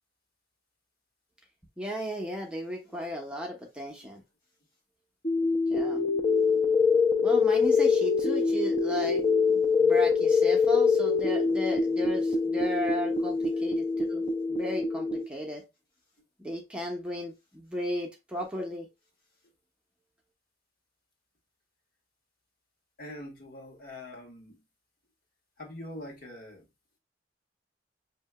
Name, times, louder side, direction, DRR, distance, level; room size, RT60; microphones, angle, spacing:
voice 1, 1.8-4.2 5.7-6.0 7.2-14.2 14.5-15.6 16.4-18.9, equal, 5° right, 0.8 m, -35 dB
voice 2, 2.8-3.1 4.0-4.1 13.5-13.7 17.8-17.9 18.6-18.7 19.4-19.5 23.0-24.6 25.6-26.7, left 1 dB, 55° left, 1.5 m, -45 dB
sound 1, 5.2-15.2, left 5 dB, 30° left, 0.5 m, -24 dB
6.1 x 2.8 x 2.2 m
head